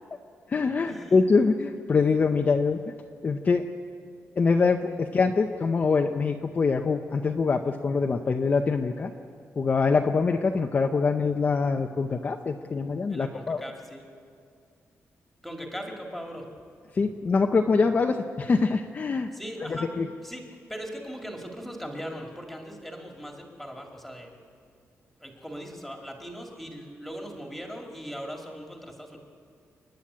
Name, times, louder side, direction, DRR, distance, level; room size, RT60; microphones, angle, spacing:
voice 1, 0.5-2.9 3.2-3.6 4.4-9.1 9.6-13.6 16.9-19.3 19.7-20.1, left 4 dB, 30° left, 3 dB, 0.6 m, -24 dB
voice 2, 13.1-14.0 15.4-16.5 19.3-19.9 20.2-24.3 25.2-29.2, equal, ahead, 1 dB, 2.2 m, -39 dB
29.5 x 10.5 x 8.5 m, 2.3 s
wide cardioid pair, 180°, 5 cm